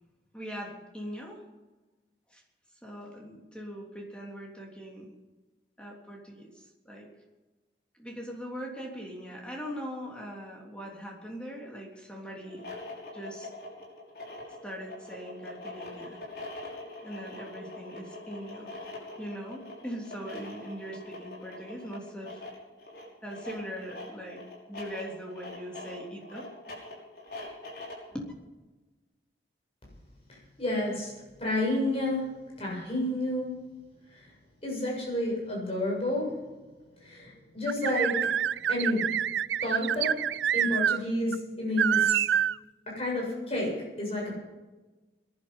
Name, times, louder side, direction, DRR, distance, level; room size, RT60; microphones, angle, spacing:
voice 1, 0.3-1.4 2.3-2.4 2.8-5.1 5.8-7.1 7.9-12.6 13.1-13.5 14.6-16.2 17.0-18.7 19.2-22.4 23.2-24.4 24.7-26.5 28.1-28.2, equal, 5° left, -1 dB, 3.3 m, -41 dB
sound 1, 12.4-28.1, left 2 dB, 60° left, 5.8 m, -43 dB
voice 2, 30.3-31.1 31.4-33.5 34.1-34.3 34.6-36.4 37.0-38.3 38.7-39.1 39.6-40.2 40.5-42.3 42.9-44.4, left 1 dB, 35° left, -2 dB, 7.4 m, -30 dB
sound 2, 37.7-41.0 41.3-41.4 41.8-42.6, right 9 dB, 90° right, 0.4 m, -26 dB
21.0 x 11.5 x 5.6 m, 1.2 s
head